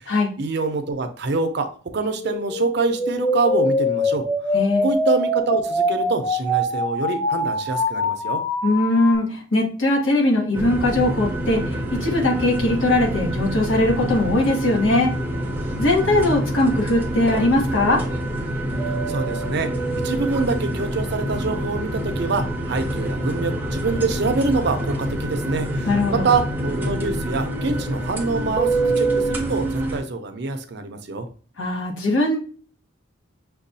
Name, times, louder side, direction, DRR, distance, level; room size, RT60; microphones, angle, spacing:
voice 1, 0.4-1.7 1.9-4.3 4.8-8.4 19.1-19.7 20.0-31.3, right 3 dB, 55° right, 7 dB, 0.5 m, -25 dB
sound 1, 2.2-9.2, left 1 dB, 15° left, 0.9 m, -23 dB
voice 2, 4.5-4.8 8.6-15.1 15.8-18.0 25.8-26.3 31.6-32.4, left 2 dB, 75° left, -1 dB, 1.2 m, -20 dB
sound 2, 10.5-30.0, right 1 dB, 10° right, 0.5 m, -26 dB
6.1 x 2.3 x 2.6 m, 0.41 s
head